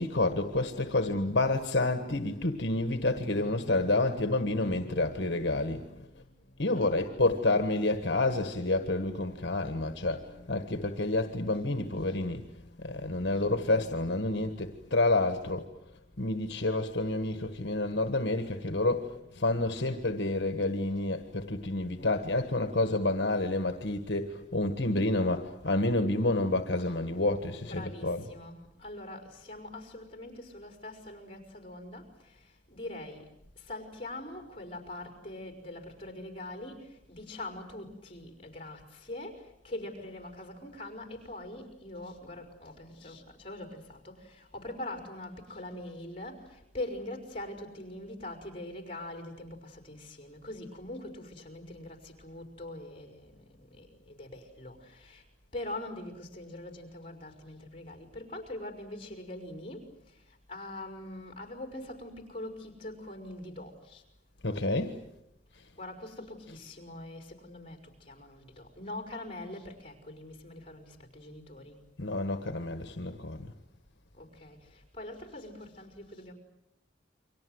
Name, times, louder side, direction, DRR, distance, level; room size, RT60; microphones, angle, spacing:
voice 1, 0.0-6.1 6.6-12.5 12.8-15.7 16.2-28.3 64.4-65.0 66.5-66.6 72.0-73.5, left 2 dB, 65° left, 1.6 m, -29 dB
voice 2, 6.7-7.7 10.4-11.0 11.5-11.7 12.1-12.2 13.3-13.5 26.8-26.9 27.6-33.3 33.6-53.3 53.6-55.2 55.5-64.0 65.8-71.8 74.1-76.3, left 1 dB, 30° left, 5.4 m, -43 dB
29.5 x 24.5 x 8.0 m
head